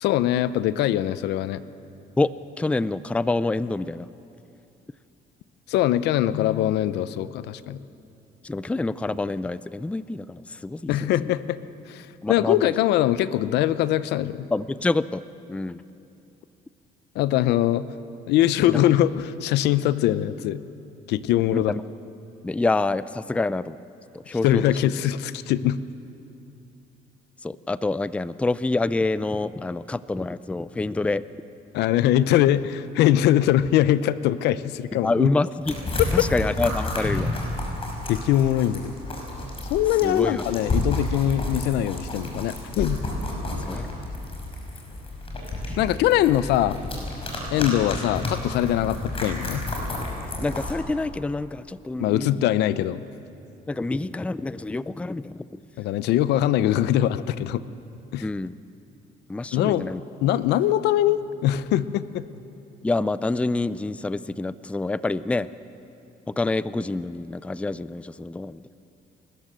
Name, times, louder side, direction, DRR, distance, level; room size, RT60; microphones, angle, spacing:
voice 1, 0.0-1.6 5.7-7.8 10.9-11.6 11.9-14.5 17.2-17.9 18.3-20.6 21.1-21.7 24.4-25.8 31.7-35.3 38.1-38.9 39.7-43.0 45.8-46.8 47.5-49.6 52.0-53.0 55.8-57.6 58.1-58.2 59.5-59.9 60.2-62.2, left 12 dB, 80° left, 15 dB, 0.7 m, -22 dB
voice 2, 2.6-4.1 8.4-10.9 11.2-11.4 12.2-12.7 14.5-15.2 15.5-15.8 18.7-18.8 21.5-21.8 22.4-23.8 24.1-24.9 27.4-31.2 35.0-35.8 36.1-37.3 40.0-40.4 43.7-43.9 50.4-52.5 53.7-55.6 58.2-58.5 59.3-60.0 62.8-65.5 66.3-68.6, left 2 dB, 5° left, 16 dB, 0.4 m, -27 dB
sound 1, 35.6-50.8, left 2 dB, 35° left, 5.7 m, -30 dB
29.5 x 13.5 x 7.6 m, 2.7 s
cardioid pair, 110°, 17 cm